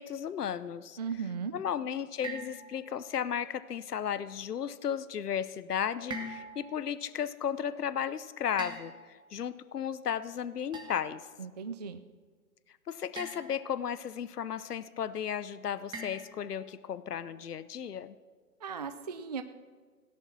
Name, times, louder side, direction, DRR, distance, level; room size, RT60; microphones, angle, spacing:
voice 1, 0.0-1.0 1.5-11.2 12.9-18.1, left 8 dB, 80° left, 15 dB, 0.8 m, -34 dB
voice 2, 1.0-1.5 11.4-12.0 18.6-19.4, right 6 dB, 30° right, 10 dB, 0.4 m, -37 dB
sound 1, 2.2-3.2 6.1-6.8 8.6-9.3 10.7-11.2 13.2-13.8 15.9-16.6, right 2 dB, 10° right, 1.5 m, -43 dB
17.0 x 11.0 x 6.1 m, 1.5 s
hypercardioid pair, 135°, 46 cm